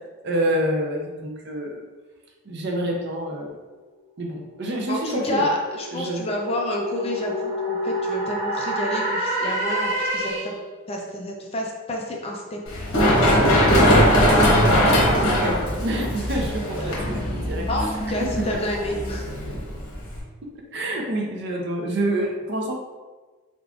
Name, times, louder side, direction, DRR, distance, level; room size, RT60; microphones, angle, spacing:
voice 1, 0.2-1.8 2.5-3.6 4.2-5.5 5.9-6.3 14.6-14.8 15.2-17.7 20.7-22.7, right 1 dB, 50° right, 0 dB, 0.6 m, -27 dB
sound 1, 4.6-10.7, equal, 30° right, 1.3 m, -28 dB
voice 2, 4.9-10.5 10.9-12.6 17.7-19.3, left 1 dB, 25° left, 0 dB, 0.4 m, -29 dB
Run, 12.7-20.2, equal, 70° left, 1.1 m, -20 dB
3.7 x 3.6 x 2.4 m, 1.3 s
head